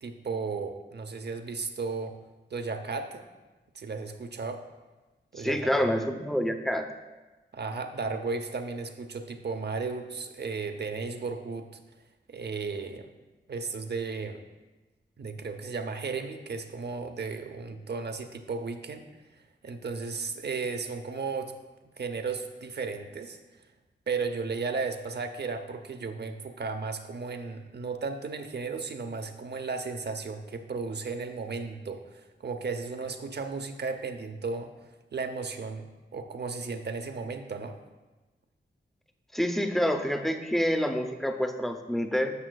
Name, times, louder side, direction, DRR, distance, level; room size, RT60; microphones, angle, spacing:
voice 1, 0.0-2.2 2.5-3.2 3.7-4.6 5.3-5.6 7.5-11.7 12.3-13.1 13.5-14.4 15.2-19.1 19.6-21.5 22.0-23.4 24.1-34.7 35.1-37.8, right 4 dB, 60° right, 7 dB, 0.6 m, -34 dB
voice 2, 5.4-6.9 39.3-42.3, equal, ahead, 5 dB, 0.6 m, -27 dB
11.0 x 7.0 x 2.3 m, 1.2 s
wide cardioid pair, 90°, 20 cm